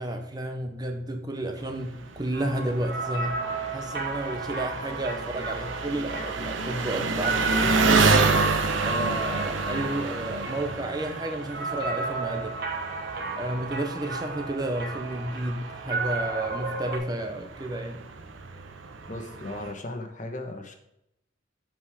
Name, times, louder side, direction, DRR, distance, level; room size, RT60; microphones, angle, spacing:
voice 1, 0.0-3.3 3.7-8.4 8.8-12.5 13.4-18.0, right 1 dB, 20° right, 4 dB, 0.9 m, -31 dB
Engine, 1.6-19.7, right 3 dB, 85° right, 1.0 m, -30 dB
sound 1, 2.3-17.0, right 3 dB, 55° right, 1.7 m, -33 dB
voice 2, 19.1-20.7, left 1 dB, 40° left, 5 dB, 1.2 m, -36 dB
7.6 x 5.5 x 4.9 m, 0.81 s
head